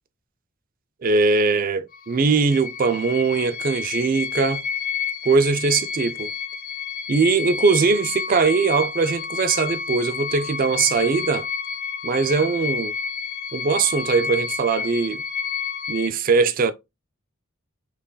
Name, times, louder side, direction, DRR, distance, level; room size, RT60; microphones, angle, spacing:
voice 1, 1.0-4.6 5.2-6.3 7.1-11.5 12.0-12.9 13.5-15.2 15.9-16.7, right 4 dB, 45° right, 0.4 m, -21 dB
sound 1, 1.9-16.1, left 6 dB, 45° left, 0.3 m, -30 dB
5.3 x 2.5 x 2.2 m
head